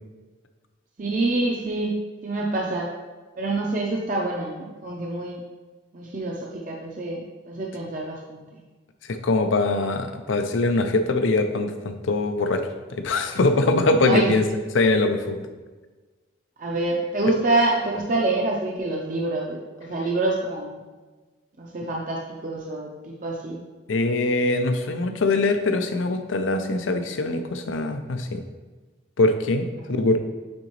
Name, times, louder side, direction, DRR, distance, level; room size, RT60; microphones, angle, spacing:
voice 1, 1.0-2.0 2.2-2.9 3.4-5.4 5.9-8.4 14.1-14.3 16.6-20.8 21.6-23.6 29.9-30.1, right 2 dB, 40° right, -2 dB, 0.6 m, -26 dB
voice 2, 9.1-12.6 12.9-14.4 14.7-15.4 23.9-28.4 29.2-30.2, left 2 dB, 85° left, 7 dB, 0.6 m, -22 dB
8.7 x 3.9 x 3.1 m, 1.3 s
head